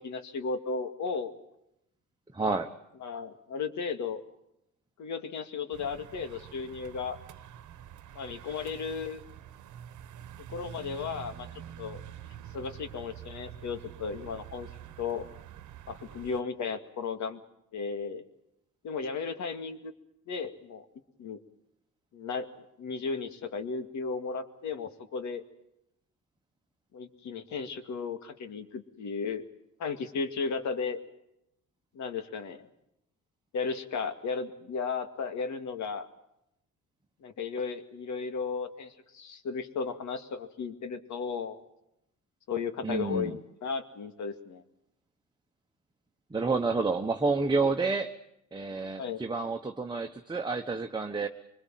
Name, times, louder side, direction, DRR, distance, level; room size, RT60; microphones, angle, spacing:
voice 1, 0.0-1.3 3.0-4.2 5.0-7.2 8.1-9.2 10.5-11.5 11.8-12.0 12.5-14.7 15.0-15.3 15.9-17.4 17.7-18.2 18.8-19.9 20.3-20.8 21.2-21.4 22.1-22.5 22.8-25.4 26.9-29.4 29.8-31.0 31.9-32.7 33.5-36.1 37.2-41.6 42.5-44.6 49.0-49.2, left 5 dB, 70° left, 8 dB, 2.3 m, -35 dB
voice 2, 2.3-2.7 42.8-43.4 46.3-48.1 48.5-51.3, right 3 dB, 15° right, 4 dB, 1.3 m, -29 dB
sound 1, 5.7-16.4, right 10 dB, 75° right, 1.2 m, -47 dB
24.5 x 21.0 x 7.6 m, 0.82 s
cardioid pair, 90°, 30 cm